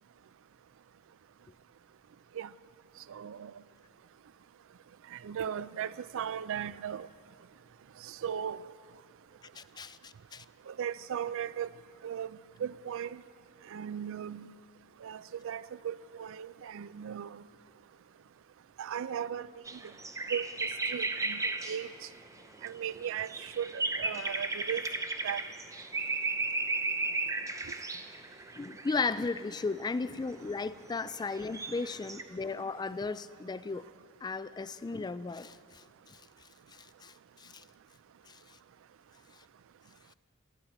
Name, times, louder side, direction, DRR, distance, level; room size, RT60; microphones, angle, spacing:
voice 1, 3.1-3.5 5.1-7.1 8.0-8.6 10.7-11.7 12.0-12.3 12.6-13.2 13.7-14.5 15.0-17.4 18.8-19.5 20.3-21.9 22.6-24.8 25.2-25.4, right 8 dB, 65° right, 0.4 m, -37 dB
voice 2, 9.5-10.4 28.6-33.9 34.2-36.2 36.7-37.6 38.3-38.4, left 4 dB, 20° left, 0.3 m, -36 dB
sound 1, 19.7-21.9 22.5-29.2 30.0-30.1 31.1-32.2, right 3 dB, 15° right, 0.6 m, -35 dB
19.0 x 13.5 x 4.3 m
head